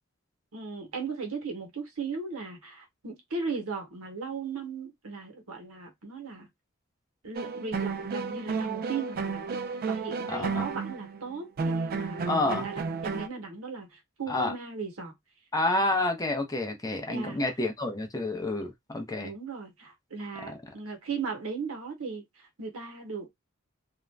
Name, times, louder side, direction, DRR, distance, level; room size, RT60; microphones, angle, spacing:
voice 1, 0.5-6.5 7.2-9.6 9.9-15.1 17.1-17.4 19.2-23.3, right 4 dB, 85° right, 1.0 m, -37 dB
sound 1, 7.3-13.3, right 4 dB, 45° right, 0.3 m, -32 dB
voice 2, 10.3-10.7 12.3-12.7 14.3-14.5 15.5-19.3, left 2 dB, 15° left, 0.6 m, -29 dB
2.5 x 2.1 x 3.2 m
head